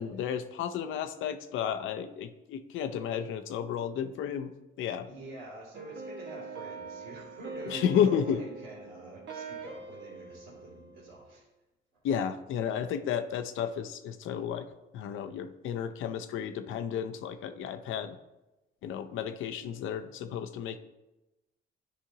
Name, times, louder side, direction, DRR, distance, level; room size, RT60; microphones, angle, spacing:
voice 1, 0.0-5.1 7.7-8.4 12.0-14.7 14.9-18.2 18.8-20.8, left 8 dB, 80° left, 8 dB, 0.6 m, -32 dB
voice 2, 5.0-11.5 11.9-12.0, right 2 dB, 85° right, -8 dB, 2.6 m, -46 dB
sound 1, 5.7-11.4, right 4 dB, 65° right, 1.3 m, -44 dB
10.0 x 5.0 x 2.8 m, 1.0 s
cardioid pair, 90°, 20 cm